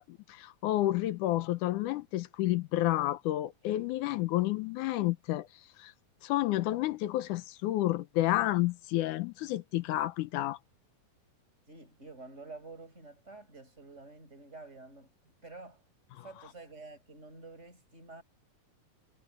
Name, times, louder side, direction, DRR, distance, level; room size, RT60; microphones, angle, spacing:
voice 1, 0.0-5.5 5.8-5.9 6.2-10.6 16.2-16.3, left 15 dB, 80° left, 2.2 m, -30 dB
voice 2, 11.7-15.8 16.1-18.2, right 3 dB, 20° right, 7.1 m, -49 dB
omnidirectional pair, 3.6 m